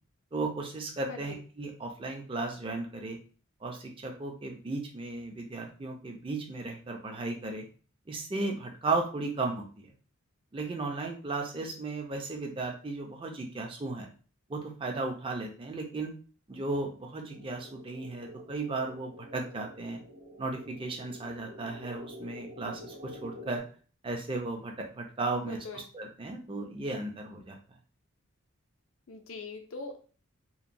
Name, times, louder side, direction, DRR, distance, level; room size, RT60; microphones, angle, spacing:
voice 1, 0.3-3.2 3.6-7.7 8.1-9.9 10.5-14.1 14.5-16.1 16.5-20.0 20.4-23.6 24.0-27.6, right 3 dB, 25° right, 2 dB, 0.4 m, -35 dB
sound 1, 17.3-23.6, left 1 dB, 85° right, 1.2 m, -48 dB
voice 2, 25.3-25.8 29.1-30.0, left 3 dB, 65° left, 4 dB, 0.4 m, -42 dB
2.9 x 2.1 x 2.5 m, 0.39 s
head